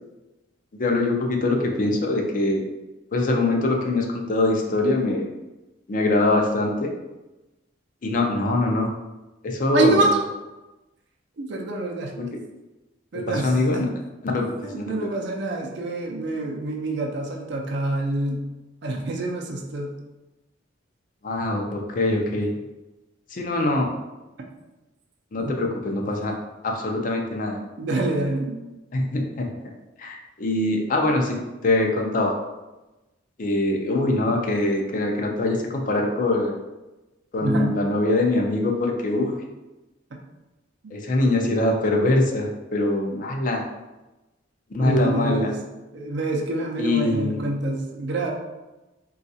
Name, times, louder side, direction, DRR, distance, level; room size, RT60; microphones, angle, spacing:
voice 1, 0.7-2.7 3.1-5.3 5.9-6.9 8.0-8.9 9.4-10.1 12.2-12.3 13.3-13.9 14.2-15.1 21.2-22.5 23.3-23.9 25.3-26.3 26.6-27.6 28.9-29.5 30.0-32.3 33.4-36.6 37.3-39.4 40.9-43.6 44.7-45.5 46.8-47.4, left 2 dB, 45° left, 2 dB, 0.4 m, -23 dB
voice 2, 9.7-10.2 11.4-12.1 13.1-13.9 14.6-18.4 18.8-19.9 25.4-25.6 27.8-28.6 37.4-37.7 40.8-41.0 44.8-45.6 45.9-48.3, right 2 dB, 60° right, 0 dB, 0.5 m, -26 dB
3.9 x 2.3 x 2.7 m, 1.1 s
head